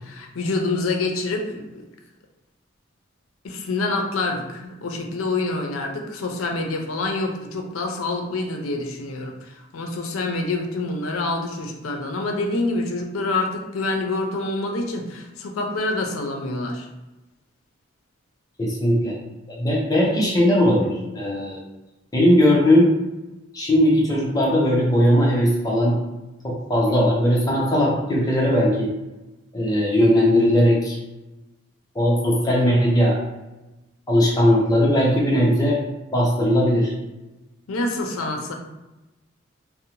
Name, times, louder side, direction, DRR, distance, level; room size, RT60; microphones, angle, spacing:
voice 1, 0.0-1.9 3.4-16.9 37.7-38.5, left 2 dB, 85° left, 2 dB, 0.4 m, -27 dB
voice 2, 18.6-19.1 19.5-21.6 22.1-22.9 23.5-25.9 26.4-28.9 29.5-31.0 31.9-33.2 34.1-35.8 36.1-36.9, equal, 20° left, -4 dB, 0.6 m, -18 dB
2.6 x 2.0 x 2.9 m, 1.0 s
head